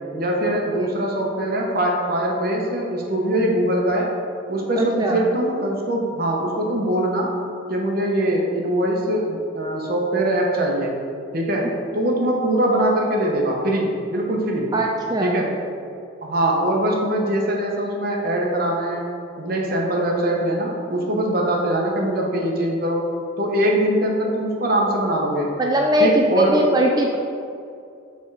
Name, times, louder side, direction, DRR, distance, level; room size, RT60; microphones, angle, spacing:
voice 1, 0.1-4.1 4.5-7.3 7.7-11.0 11.3-11.7 11.9-14.7 15.2-15.5 16.2-19.0 19.4-23.1 23.4-25.5 26.0-26.7, right 1 dB, 45° right, -1 dB, 0.9 m, -22 dB
voice 2, 4.8-5.3 14.7-15.4 25.6-27.1, right 1 dB, 20° right, 0 dB, 0.3 m, -20 dB
7.2 x 3.5 x 4.7 m, 2.5 s
head